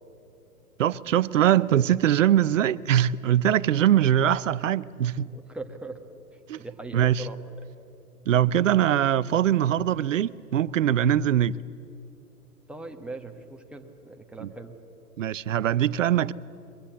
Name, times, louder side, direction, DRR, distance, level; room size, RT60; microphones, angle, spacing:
voice 1, 0.8-5.3 6.5-6.6 6.9-7.3 8.3-11.5 14.4-14.5 15.2-16.3, right 11 dB, 55° right, 0.7 m, -22 dB
voice 2, 5.3-6.0 6.3-7.4 12.7-14.8, right 3 dB, ahead, 1.2 m, -40 dB
23.0 x 22.0 x 8.5 m
figure-of-eight pair, 120°, 46 cm